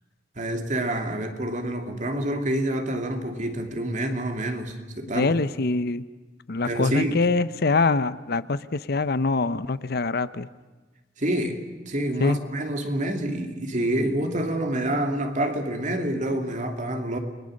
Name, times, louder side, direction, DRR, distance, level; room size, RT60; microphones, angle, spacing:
voice 1, 0.4-5.3 6.6-7.2 11.2-17.2, right 1 dB, 45° right, 2.7 m, -27 dB
voice 2, 5.1-6.0 6.5-10.5 12.2-12.4, left 3 dB, 60° left, 0.7 m, -24 dB
29.5 x 22.0 x 6.5 m
head